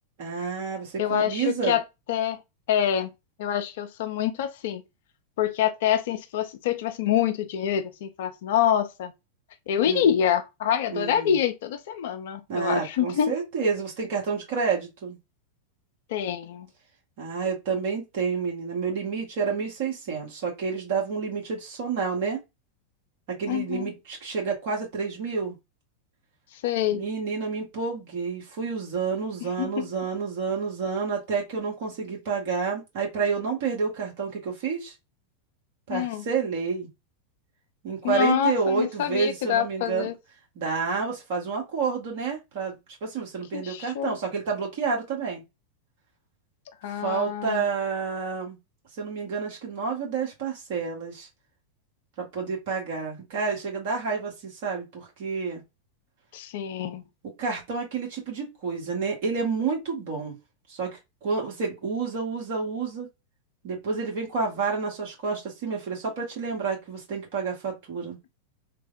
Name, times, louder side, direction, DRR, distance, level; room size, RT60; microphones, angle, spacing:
voice 1, 0.2-1.8 9.9-10.1 10.9-11.4 12.5-15.2 17.2-22.4 23.3-25.5 26.9-34.9 35.9-36.9 37.8-40.1 40.5-45.4 47.0-48.6 49.0-51.3 52.2-55.6 57.2-60.4 60.7-60.9 61.2-63.1 63.6-68.2, right 5 dB, 50° right, 1.2 m, -29 dB
voice 2, 1.0-1.8 2.1-2.4 2.7-3.1 3.4-4.8 5.4-9.1 9.7-13.3 16.1-16.7 23.5-23.9 26.5-27.0 29.4-29.9 35.9-36.3 38.0-40.2 43.5-44.2 46.8-47.6 56.3-57.0, left 9 dB, 55° left, 0.4 m, -26 dB
3.2 x 2.0 x 2.5 m
figure-of-eight pair, 90°, 0 cm